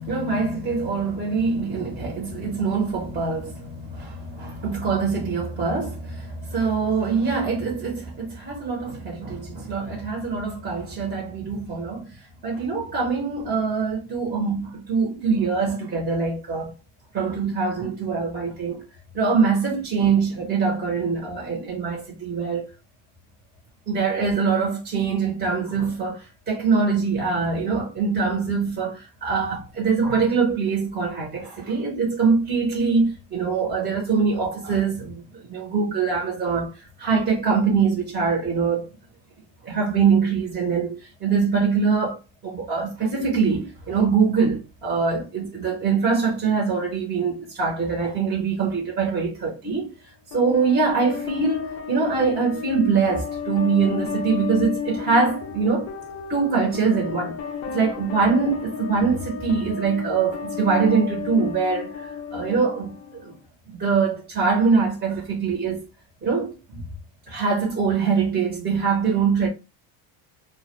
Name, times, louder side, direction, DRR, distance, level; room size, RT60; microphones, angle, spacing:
voice 1, 0.0-12.1 12.4-16.7 17.1-18.8 19.1-22.7 23.9-36.7 37.0-38.9 39.6-49.9 50.3-55.9 56.3-57.4 57.7-63.3 63.7-65.8 66.2-66.8 67.3-69.5, right 5 dB, 20° right, 0.8 m, -23 dB
sound 1, 50.3-63.3, left 7 dB, 35° left, 0.4 m, -33 dB
2.2 x 2.2 x 2.9 m
cardioid pair, 145°, 48 cm